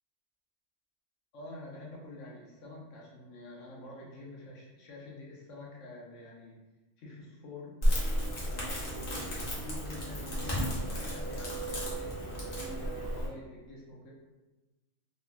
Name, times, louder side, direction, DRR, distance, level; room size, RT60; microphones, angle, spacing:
voice 1, 1.3-6.6 7.0-7.7 8.4-14.1, left 1 dB, 80° left, -3 dB, 1.0 m, -47 dB
Crackle, 7.8-13.3, equal, 50° left, 0.9 m, -33 dB
3.2 x 2.1 x 2.4 m, 1.1 s
omnidirectional pair, 1.3 m